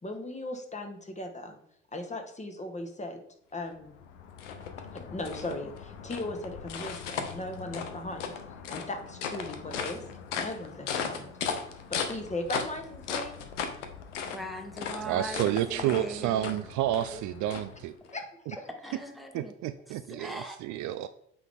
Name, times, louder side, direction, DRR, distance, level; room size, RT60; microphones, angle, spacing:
voice 1, 0.0-1.6 1.9-3.2 3.5-4.0 4.9-8.3 8.7-10.0 10.4-11.3 11.9-13.4 18.1-18.7, left 1 dB, 20° left, 4 dB, 1.4 m, -38 dB
sound 1, 3.7-18.2, left 6 dB, 80° left, 0.8 m, -37 dB
voice 2, 14.3-16.5 17.1-17.2 17.5-17.6 18.7-19.5 20.1-20.6, right 1 dB, ahead, 5 dB, 1.3 m, -40 dB
voice 3, 15.0-17.9 19.3-21.1, right 12 dB, 55° right, 11 dB, 0.4 m, -30 dB
8.4 x 3.9 x 3.6 m, 0.74 s
hypercardioid pair, 55°, 36 cm